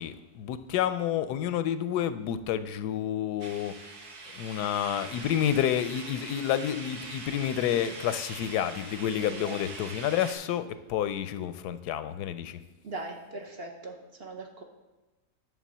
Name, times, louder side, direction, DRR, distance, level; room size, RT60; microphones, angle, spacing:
voice 1, 0.0-3.7 4.3-12.6, left 10 dB, 85° left, 12 dB, 1.1 m, -29 dB
sound 1, 3.4-10.3, right 3 dB, 75° right, 1.8 m, -43 dB
voice 2, 9.2-9.6 12.8-13.9 14.2-14.6, right 2 dB, 45° right, 3 dB, 1.0 m, -39 dB
10.5 x 3.8 x 7.2 m, 1.1 s
omnidirectional pair, 1.7 m